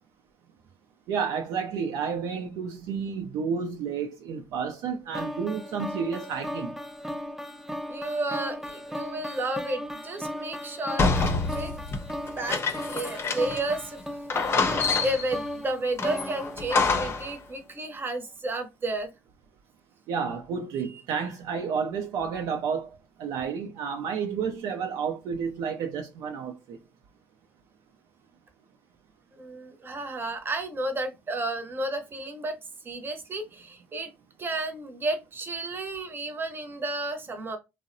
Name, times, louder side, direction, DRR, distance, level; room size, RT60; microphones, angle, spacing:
voice 1, 1.1-6.8 20.1-26.8, right 6 dB, 70° right, 0.4 m, -31 dB
sound 1, 5.1-17.3, equal, 5° right, 0.4 m, -37 dB
voice 2, 7.9-11.8 12.4-14.2 15.0-19.1 20.9-21.0 29.3-32.6 32.8-34.1 34.4-37.6, right 2 dB, 35° right, 0.7 m, -32 dB
sound 2, 11.0-13.7 14.0-14.1 14.3-15.4 16.0-17.3, left 4 dB, 40° left, 0.6 m, -27 dB
2.6 x 2.0 x 2.5 m
hypercardioid pair, 65°, 6 cm